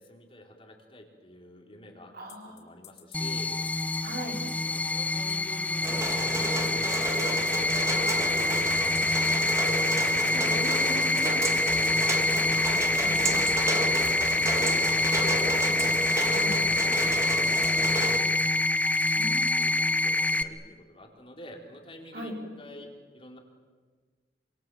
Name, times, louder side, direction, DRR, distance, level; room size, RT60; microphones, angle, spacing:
voice 1, 0.0-2.1 2.4-3.6 4.7-7.6 10.1-11.0 12.0-15.5 16.7-18.6 19.2-20.6 20.9-23.4, equal, 30° left, 2 dB, 3.7 m, -48 dB
voice 2, 2.1-2.7 4.0-4.4 8.0-8.8 10.3-11.4 13.0-13.4 16.3-16.6 19.1-19.7 22.1-22.3, right 1 dB, 55° right, 0 dB, 5.6 m, -39 dB
sound 1, 2.3-19.7, left 13 dB, 65° left, 3.6 m, -49 dB
sound 2, 3.1-20.4, left 2 dB, 10° left, 0.9 m, -26 dB
sound 3, 5.8-18.2, right 1 dB, 15° right, 2.7 m, -32 dB
27.0 x 26.5 x 7.7 m, 1.4 s
head